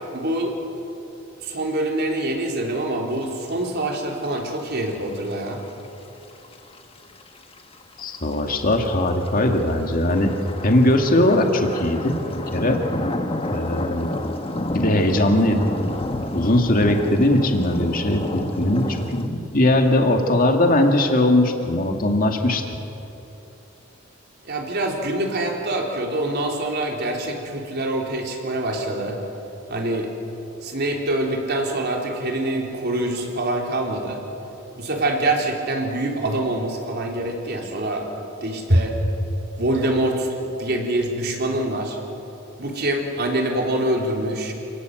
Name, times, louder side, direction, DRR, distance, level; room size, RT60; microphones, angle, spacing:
voice 1, 0.1-0.6 1.4-5.6 24.5-29.2 29.7-30.1 30.6-34.2 34.8-38.1 38.4-38.9 39.6-40.3 40.6-42.0 42.6-44.5, right 1 dB, 55° right, 1 dB, 3.8 m, -25 dB
sound 1, 4.0-4.1 4.4-4.5 5.1-5.7 6.4-6.5 6.7-6.8 7.2-8.2 8.7-19.3, left 1 dB, 30° left, 1.3 m, -30 dB
voice 2, 8.0-10.3 10.6-12.8 13.5-14.1 14.7-15.8 16.3-22.6, left 1 dB, 45° left, 3 dB, 2.3 m, -20 dB
29.0 x 18.5 x 7.9 m, 2.9 s
head